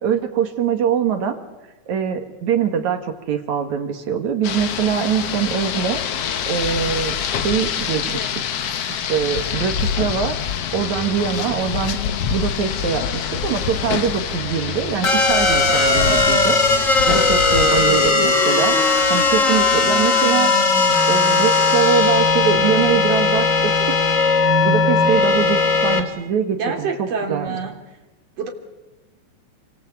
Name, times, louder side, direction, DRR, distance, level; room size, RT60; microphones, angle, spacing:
voice 1, 0.0-1.4 1.9-6.0 6.4-8.3 9.1-10.4 10.7-12.0 12.3-16.6 17.1-18.8 19.1-20.5 21.1-23.9 24.6-27.6, right 8 dB, 75° right, 7 dB, 3.2 m, -23 dB
Rain, 4.4-18.1, left 8 dB, 60° left, 2.0 m, -26 dB
sound 1, 15.0-26.0, left 3 dB, 30° left, 2.3 m, -17 dB
voice 2, 17.7-18.1 26.5-27.7 28.4-28.5, right 5 dB, 55° right, 2 dB, 4.4 m, -27 dB
29.0 x 24.0 x 8.3 m, 1.1 s
omnidirectional pair, 3.4 m